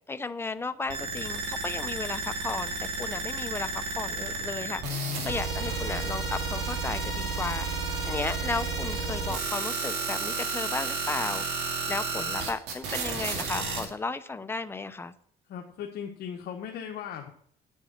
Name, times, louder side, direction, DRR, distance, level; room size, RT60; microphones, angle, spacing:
voice 1, 0.1-7.7 8.0-11.5 11.9-15.2, left 3 dB, 15° left, 11 dB, 0.6 m, -34 dB
sound 1, 0.9-13.9, right 3 dB, 85° right, 2.3 m, -32 dB
voice 2, 4.8-5.8 15.5-17.3, left 9 dB, 70° left, 2 dB, 1.1 m, -37 dB
9.0 x 7.3 x 5.8 m, 0.63 s
cardioid pair, 110°, 17 cm